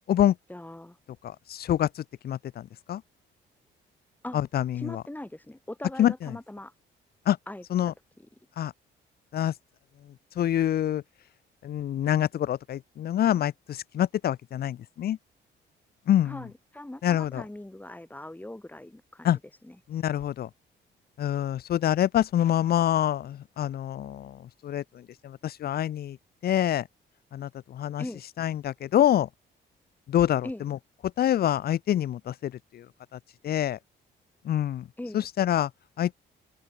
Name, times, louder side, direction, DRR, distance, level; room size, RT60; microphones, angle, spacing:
voice 1, 0.5-1.0 4.2-4.4 4.7-6.7 7.5-7.9 16.2-19.3 19.6-19.8 28.0-28.2 30.4-30.6 35.0-35.3, left 1 dB, 10° left, 3.8 m, -40 dB
voice 2, 1.2-3.0 4.3-5.0 6.0-6.4 7.3-7.4 7.7-7.9 8.6-8.7 9.3-9.5 10.4-11.0 11.6-15.2 16.1-16.4 17.0-17.4 19.2-19.4 19.9-20.5 21.2-26.2 26.4-26.9 27.3-28.0 28.4-29.3 30.1-30.8 31.2-32.9 33.1-33.8 34.4-34.9 35.1-35.7 36.0-36.1, left 11 dB, 50° left, 0.5 m, -26 dB
open air
cardioid pair, 90°, 20 cm